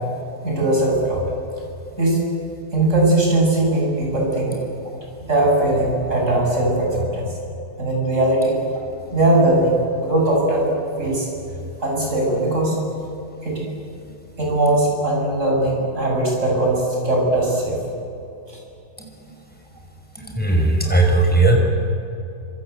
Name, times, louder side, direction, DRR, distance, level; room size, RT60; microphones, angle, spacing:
voice 1, 0.4-1.3 2.0-2.2 2.7-4.6 5.3-7.3 7.8-8.6 9.1-11.3 11.8-12.8 13.4-13.6 14.4-17.8 20.8-20.9, right 2 dB, 40° right, -2 dB, 7.5 m, -19 dB
voice 2, 20.3-21.6, right 2 dB, 5° left, 1 dB, 5.1 m, -16 dB
27.0 x 25.0 x 8.0 m, 2.8 s
omnidirectional pair, 1.9 m